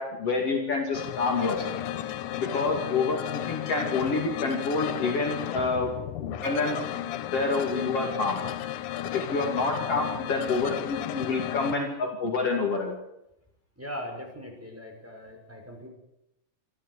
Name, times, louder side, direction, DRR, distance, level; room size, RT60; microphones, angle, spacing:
voice 1, 0.0-1.7 2.4-5.9 6.2-7.0 7.3-8.4 9.1-13.0, left 3 dB, 50° left, 2 dB, 3.5 m, -28 dB
sound 1, 0.9-11.7, left 11 dB, 80° left, 2.5 m, -34 dB
voice 2, 13.8-15.9, equal, 5° right, 1 dB, 5.8 m, -40 dB
27.5 x 13.5 x 8.4 m, 0.84 s
omnidirectional pair, 3.5 m